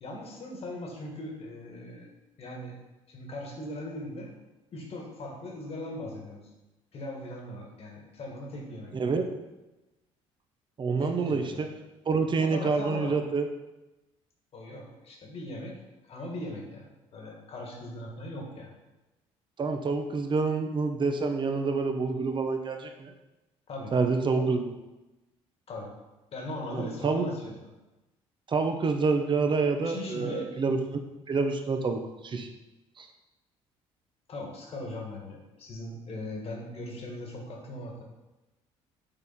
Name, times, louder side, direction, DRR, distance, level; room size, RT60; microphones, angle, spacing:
voice 1, 0.0-2.1 2.4-2.8 3.1-4.3 4.7-6.4 6.9-9.2 11.0-11.7 12.4-13.2 14.5-15.8 16.0-18.7 23.7-24.1 24.3-24.5 25.7-25.9 26.3-27.6 29.8-30.5 34.3-38.0, left 1 dB, 50° left, 0 dB, 1.9 m, -39 dB
voice 2, 8.9-9.3 10.8-11.7 12.1-13.5 19.6-23.1 23.9-24.6 26.7-27.3 28.5-31.0 31.3-32.5 33.0-33.1, right 4 dB, 40° right, 6 dB, 0.9 m, -27 dB
6.9 x 3.6 x 4.2 m, 1.0 s
supercardioid pair, 75°, 13 cm